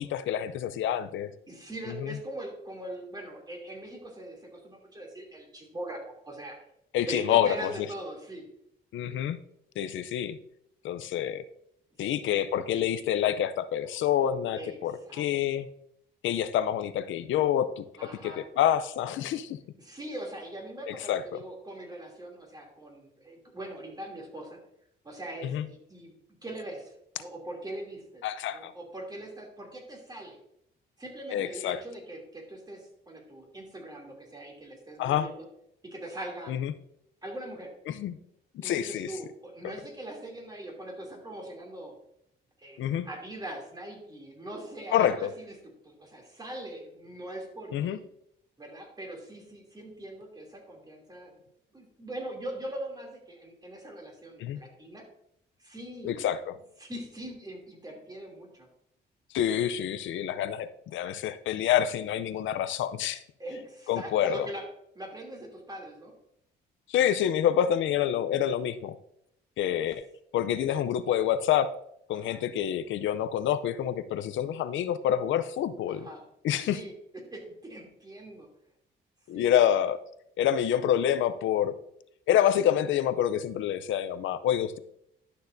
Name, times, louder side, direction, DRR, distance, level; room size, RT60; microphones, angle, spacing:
voice 1, 0.0-1.3 2.0-2.2 6.9-7.7 8.9-9.4 9.8-10.4 10.8-11.4 12.0-15.7 16.2-19.6 20.9-21.2 25.4-25.7 28.2-28.7 31.3-31.8 35.0-35.3 36.5-36.7 37.9-38.2 38.6-39.1 42.8-43.1 44.9-45.3 47.7-48.0 54.4-54.6 56.0-56.5 59.3-63.2 63.9-64.5 66.9-68.9 69.6-70.0 70.3-71.7 72.1-76.1 76.4-76.8 79.3-80.0 80.4-81.7 82.3-84.8, left 10 dB, 75° left, 12 dB, 0.6 m, -27 dB
voice 2, 1.5-6.6 6.9-8.4 12.0-12.5 14.5-14.8 15.0-15.6 18.0-18.4 19.8-24.6 25.0-26.1 26.4-28.2 28.5-30.4 31.0-35.5 35.8-36.5 37.2-37.7 38.6-41.9 42.6-45.5 45.8-48.0 48.6-51.3 51.7-55.0 55.6-56.2 56.8-58.7 63.4-64.6 64.9-66.1 72.1-72.4 75.9-76.2 76.6-78.5 79.3-79.6, right 1 dB, 20° right, 0 dB, 2.8 m, -41 dB
11.5 x 6.7 x 2.6 m, 0.74 s
cardioid pair, 90°, 20 cm